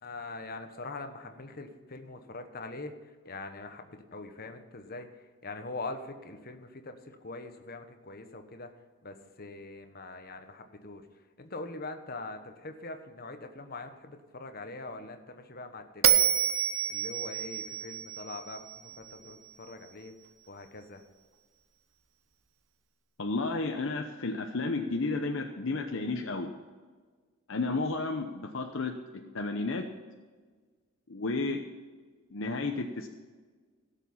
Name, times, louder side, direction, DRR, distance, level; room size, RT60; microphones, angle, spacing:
voice 1, 0.0-2.9 3.2-5.1 5.4-8.7 9.0-11.0 11.4-16.2 16.9-20.1 20.5-21.0, left 2 dB, 45° left, 6 dB, 1.2 m, -43 dB
Bell, 16.0-19.3, right 9 dB, 65° right, 0.9 m, -28 dB
voice 2, 23.2-26.5 27.5-29.9 31.1-31.6 32.3-33.1, left 3 dB, 60° left, 4 dB, 0.8 m, -32 dB
17.0 x 7.3 x 5.5 m, 1.4 s
head